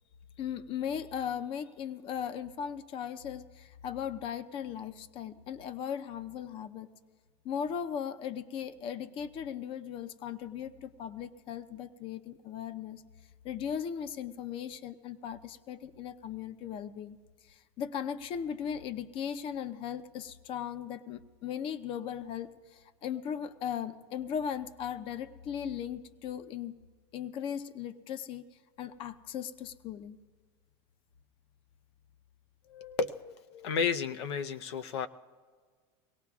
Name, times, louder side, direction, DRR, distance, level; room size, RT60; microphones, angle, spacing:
voice 1, 0.4-6.9 7.4-13.0 13.4-17.2 17.4-26.8 27.1-28.4 28.8-30.2 32.7-33.0 33.5-33.7, left 8 dB, 40° left, 11 dB, 0.7 m, -38 dB
voice 2, 33.6-35.1, left 6 dB, 90° left, 9 dB, 0.7 m, -31 dB
24.0 x 17.5 x 2.4 m, 1.6 s
supercardioid pair, 135°, 13 cm